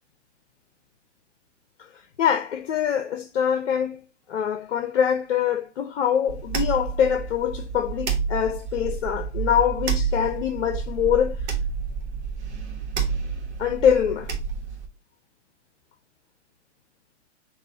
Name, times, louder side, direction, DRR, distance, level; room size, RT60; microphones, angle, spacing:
voice 1, 2.2-4.0 4.3-11.5 13.6-14.3, left 8 dB, 60° left, 0.7 m, -24 dB
sound 1, 6.3-14.9, right 6 dB, 65° right, 1.3 m, -29 dB
6.0 x 2.6 x 2.7 m
hypercardioid pair, 115°, 36 cm